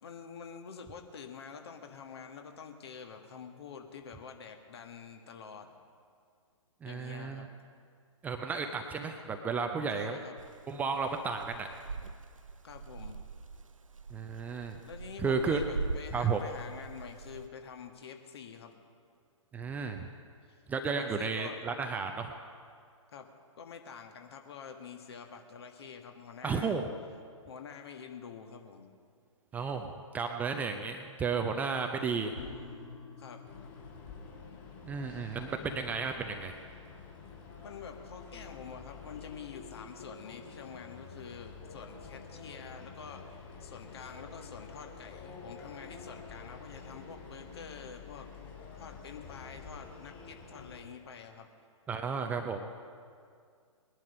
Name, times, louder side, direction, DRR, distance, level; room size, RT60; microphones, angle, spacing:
voice 1, 0.0-5.8 6.8-7.5 9.9-10.4 12.6-13.2 14.8-18.7 20.4-20.6 20.9-21.6 23.1-26.8 27.5-29.0 33.2-33.4 37.6-43.2 43.6-48.3 48.7-51.5, left 6 dB, 50° left, 5 dB, 1.5 m, -47 dB
voice 2, 6.8-7.5 8.2-10.2 10.7-11.7 14.1-14.8 15.2-15.6 16.1-16.5 19.5-20.1 20.7-22.3 26.4-26.9 29.5-32.4 34.8-36.6 51.9-52.7, right 5 dB, 10° right, 5 dB, 0.5 m, -33 dB
sound 1, 10.4-17.5, right 4 dB, 75° right, 0.6 m, -42 dB
sound 2, 32.3-39.5 39.8-39.9, left 3 dB, 80° left, 4.0 m, -51 dB
sound 3, 33.4-50.8, left 5 dB, 25° left, 3.2 m, -49 dB
20.5 x 11.0 x 5.4 m, 2.2 s
figure-of-eight pair, 120°, 17 cm